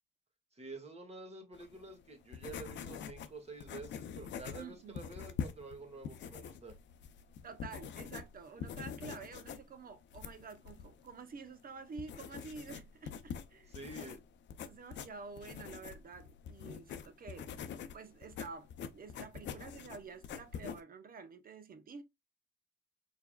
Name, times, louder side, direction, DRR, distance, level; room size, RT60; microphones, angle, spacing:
voice 1, 0.5-6.8 13.7-14.2, right 2 dB, 30° right, 1.7 m, -49 dB
sound 1, 1.5-20.8, left 7 dB, 65° left, 0.6 m, -45 dB
voice 2, 4.6-5.0 7.4-14.2 14.6-17.5 17.9-22.0, right 5 dB, 45° right, 0.8 m, -49 dB
4.6 x 3.5 x 2.3 m
cardioid pair, 90°, 20 cm